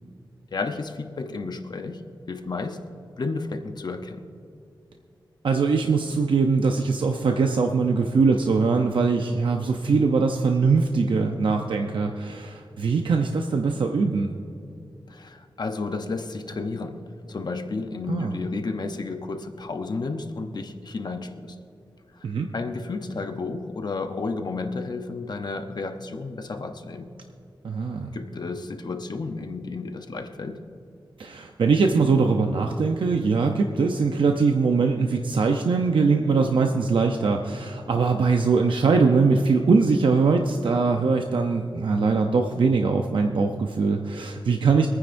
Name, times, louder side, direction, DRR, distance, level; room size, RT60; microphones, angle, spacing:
voice 1, 0.5-2.8 3.2-4.2 15.1-21.6 22.1-22.2 22.5-27.1 28.1-30.6, left 3 dB, 55° left, 5 dB, 0.8 m, -32 dB
voice 2, 5.4-14.3 18.1-18.3 22.2-22.5 27.6-28.1 31.2-44.9, right 4 dB, 75° right, 3 dB, 0.7 m, -22 dB
25.0 x 9.6 x 2.6 m, 2.6 s
wide cardioid pair, 125°, 9 cm